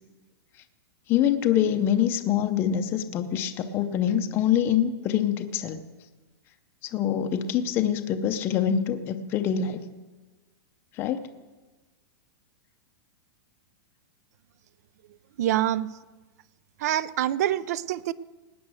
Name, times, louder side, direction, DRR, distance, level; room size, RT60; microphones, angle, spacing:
voice 1, 1.1-5.8 6.9-9.9 11.0-11.2, left 9 dB, 15° left, 7 dB, 0.6 m, -25 dB
voice 2, 15.4-15.9 16.8-18.1, right 12 dB, 40° right, 20 dB, 0.4 m, -25 dB
18.5 x 9.3 x 6.2 m, 1.2 s
supercardioid pair, 180°, 13 cm